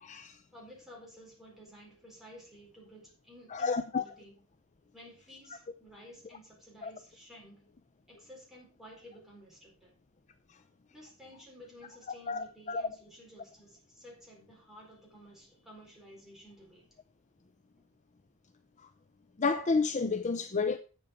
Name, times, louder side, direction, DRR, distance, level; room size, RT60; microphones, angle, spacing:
voice 1, 0.0-0.3 3.5-4.0 6.8-6.9 12.3-12.9 19.4-20.8, left 4 dB, 35° left, 0.5 m, -30 dB
voice 2, 0.5-4.4 4.9-7.7 8.1-10.0 10.9-16.9, equal, ahead, 4.3 m, -53 dB
8.5 x 7.5 x 5.6 m
head